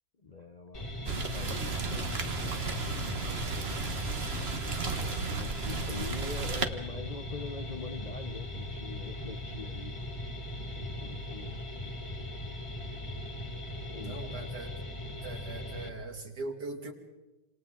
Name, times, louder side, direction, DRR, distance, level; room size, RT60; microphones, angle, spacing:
voice 1, 0.2-3.6 4.9-10.0 10.7-11.6 13.9-14.5, left 4 dB, 75° left, 6 dB, 0.3 m, -44 dB
sound 1, 0.7-15.9, left 1 dB, 15° left, 1.7 m, -39 dB
Rain, 1.1-6.7, right 4 dB, 35° right, 1.4 m, -34 dB
voice 2, 14.0-14.9 15.2-16.9, right 3 dB, 55° right, 2 dB, 3.1 m, -40 dB
28.5 x 27.0 x 3.8 m, 1.1 s
omnidirectional pair, 2.2 m